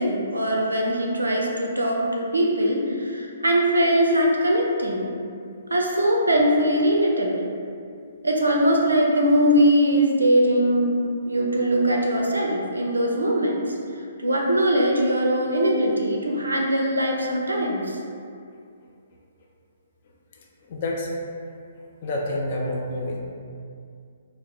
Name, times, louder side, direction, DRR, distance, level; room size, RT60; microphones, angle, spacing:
voice 1, 0.0-5.1 5.7-7.5 8.2-13.6 14.2-17.8, equal, 75° right, -1 dB, 0.4 m, -21 dB
voice 2, 20.7-21.1 22.0-23.2, left 1 dB, 40° left, -2 dB, 0.3 m, -28 dB
2.1 x 2.0 x 3.4 m, 2.3 s
figure-of-eight pair, 125°, 0 cm